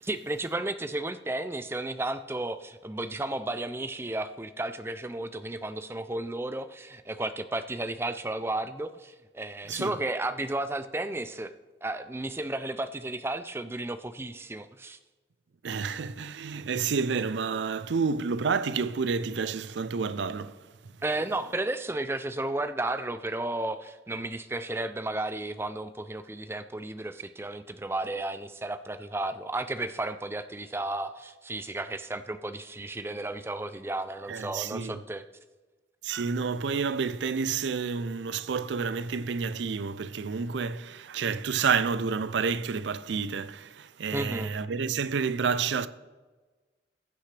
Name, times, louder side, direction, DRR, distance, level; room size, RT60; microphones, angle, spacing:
voice 1, 0.0-11.5 11.8-15.0 21.0-35.2 44.1-44.5, right 2 dB, 15° right, 0.4 m, -33 dB
voice 2, 15.6-20.6 34.3-35.0 36.0-45.9, right 5 dB, 70° right, 0.4 m, -29 dB
15.5 x 8.9 x 3.3 m
head